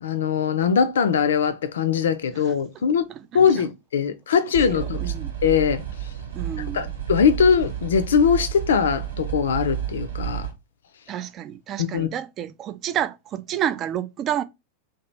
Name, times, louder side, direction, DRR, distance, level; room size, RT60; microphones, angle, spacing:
voice 1, 0.0-3.1 3.3-5.0 5.4-5.8 6.7-10.5 11.8-12.1, left 7 dB, 65° left, 0.4 m, -21 dB
sound 1, 4.5-10.5, right 10 dB, 70° right, 1.0 m, -31 dB
voice 2, 4.7-5.3 6.3-6.9 11.1-14.4, right 10 dB, 30° right, 0.4 m, -29 dB
2.8 x 2.4 x 3.3 m
figure-of-eight pair, 90°, 0 cm